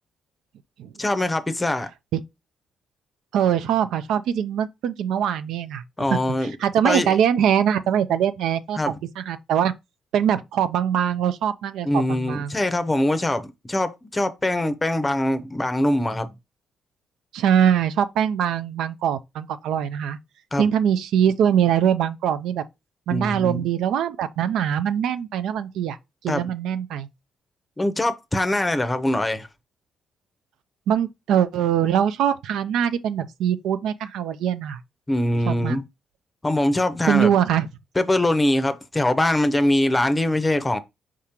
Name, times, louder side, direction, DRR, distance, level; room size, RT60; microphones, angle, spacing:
voice 1, 1.0-1.9 6.0-6.5 6.8-7.1 8.8-9.0 11.8-16.3 20.5-20.6 23.1-23.6 26.3-26.4 27.8-29.5 35.1-35.8 36.4-37.3 38.0-40.8, left 1 dB, 15° left, 0.6 m, -23 dB
voice 2, 3.3-5.8 6.1-9.7 10.1-12.6 17.3-20.2 20.6-22.6 23.1-26.0 26.2-27.1 30.9-34.8 35.5-35.8 37.0-37.7, right 9 dB, 85° right, 0.4 m, -22 dB
4.8 x 3.6 x 2.8 m
cardioid pair, 90°, 0 cm